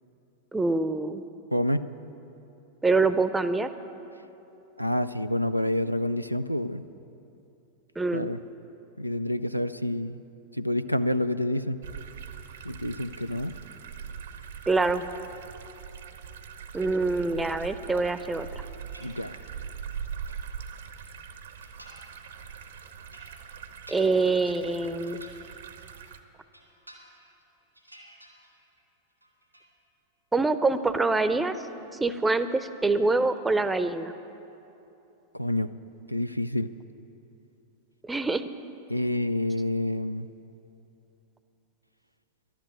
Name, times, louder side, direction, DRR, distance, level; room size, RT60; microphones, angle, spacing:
voice 1, 0.5-1.2 2.8-3.7 8.0-8.3 14.7-15.0 16.7-18.6 23.9-25.2 30.3-31.6 32.0-34.1 38.0-38.4, right 3 dB, 10° right, 12 dB, 0.6 m, -25 dB
voice 2, 1.5-1.9 4.8-6.8 8.1-8.4 9.0-10.2 10.5-11.8 12.6-13.5 19.0-19.4 35.3-35.7 36.1-36.7 38.9-40.3, left 1 dB, 90° left, 12 dB, 0.4 m, -28 dB
sound 1, 11.8-26.2, right 7 dB, 65° right, 0.8 m, -42 dB
sound 2, 18.9-19.6 20.0-21.1 21.6-22.2 22.6-26.1 26.4-27.4 27.7-28.8 29.1-29.7, right 1 dB, 90° right, 2.1 m, -53 dB
12.0 x 10.0 x 9.0 m, 2.9 s
figure-of-eight pair, 90°, 0 cm